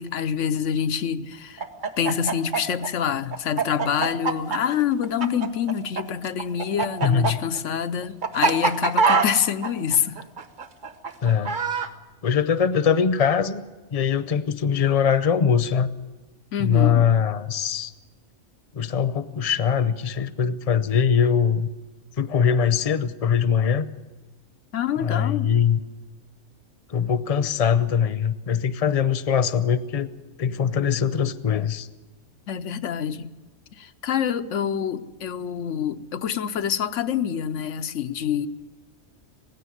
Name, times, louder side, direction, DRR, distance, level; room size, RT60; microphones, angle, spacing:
voice 1, 0.0-1.7 2.0-10.2 16.5-17.1 24.7-25.5 32.5-33.3 33.8-38.5, left 8 dB, 90° left, 1.1 m, -26 dB
Chicken rooster, 1.6-6.0 6.3-11.9, right 4 dB, 45° right, 1.2 m, -24 dB
voice 2, 7.0-7.4 11.2-11.6 12.2-13.6 13.9-15.9 16.6-17.9 18.7-21.7 22.2-23.9 25.0-25.8 26.9-30.1 30.4-31.9, left 7 dB, 35° left, 0.7 m, -22 dB
18.0 x 16.0 x 9.8 m
omnidirectional pair, 1.2 m